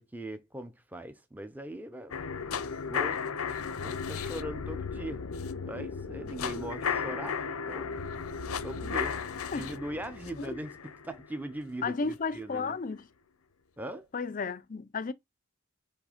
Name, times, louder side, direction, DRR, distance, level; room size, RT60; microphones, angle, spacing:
voice 1, 0.0-2.1 2.9-3.4 3.8-5.2 5.7-7.4 7.7-7.9 8.6-9.2 9.5-10.8 11.0-12.0 12.3-12.8 13.8-14.1, right 1 dB, 10° right, 0.6 m, -40 dB
sound 1, 2.1-12.1 12.5-12.6, left 6 dB, 80° left, 0.6 m, -35 dB
voice 2, 11.8-13.1 14.1-15.1, left 4 dB, 40° left, 0.5 m, -33 dB
6.3 x 3.2 x 5.0 m
head